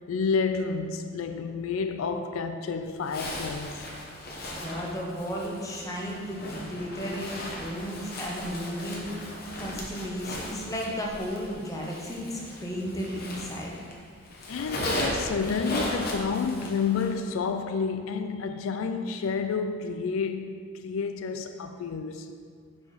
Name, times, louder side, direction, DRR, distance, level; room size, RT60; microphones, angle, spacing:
voice 1, 0.0-3.8 14.5-22.3, left 5 dB, 75° left, 0.4 m, -30 dB
Zipper (clothing), 3.0-13.9 14.2-17.2, left 1 dB, 45° left, 1.1 m, -37 dB
voice 2, 4.5-13.7, equal, 15° left, 0.9 m, -34 dB
6.0 x 4.9 x 5.4 m
head